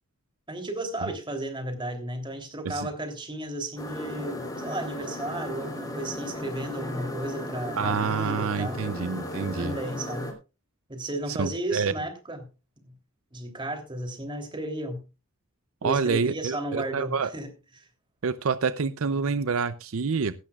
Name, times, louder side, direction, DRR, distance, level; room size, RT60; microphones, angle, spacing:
voice 1, 0.5-8.8 9.5-10.3 10.9-12.5 13.3-15.0 15.8-17.5 17.7-17.8, right 1 dB, 20° right, 5 dB, 3.2 m, -34 dB
sound 1, 3.8-10.3, left 1 dB, 20° left, 3.1 m, -35 dB
voice 2, 7.8-9.8 11.3-11.9 15.8-17.3 18.2-20.3, right 5 dB, 70° right, 14 dB, 0.6 m, -27 dB
16.5 x 12.5 x 2.4 m, 0.29 s
head